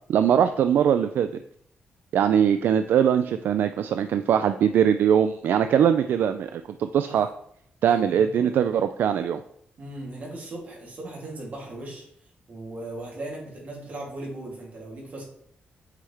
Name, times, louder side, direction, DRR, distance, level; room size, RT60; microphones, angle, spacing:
voice 1, 0.1-1.3 2.1-7.3 7.8-9.4, right 8 dB, 75° right, 10 dB, 0.3 m, -21 dB
voice 2, 7.9-8.5 9.8-12.0 12.5-15.2, right 2 dB, 50° right, -2 dB, 2.8 m, -38 dB
8.1 x 5.6 x 3.4 m, 0.69 s
cardioid pair, 130°, 3 cm